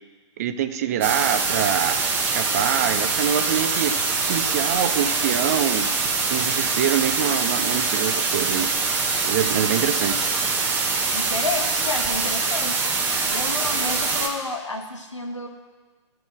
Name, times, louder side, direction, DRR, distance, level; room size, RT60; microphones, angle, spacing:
voice 1, 0.4-4.0 4.3-5.9 6.3-8.7 9.2-10.3, right 9 dB, 30° right, 10 dB, 0.5 m, -25 dB
sound 1, 1.0-14.3, right 4 dB, 15° right, 0.9 m, -24 dB
voice 2, 11.1-12.9 13.3-15.5, left 3 dB, 80° left, 3 dB, 1.4 m, -30 dB
13.5 x 4.6 x 5.9 m, 1.3 s
figure-of-eight pair, 125°, 15 cm